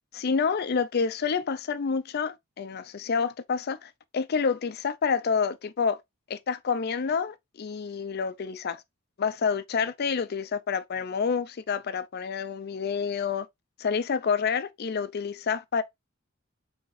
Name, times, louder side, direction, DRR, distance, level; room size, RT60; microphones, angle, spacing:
voice 1, 0.1-6.0 6.3-8.8 9.2-13.5 13.8-15.8, left 5 dB, 50° left, 0.5 m, -28 dB
4.7 x 3.6 x 2.5 m
head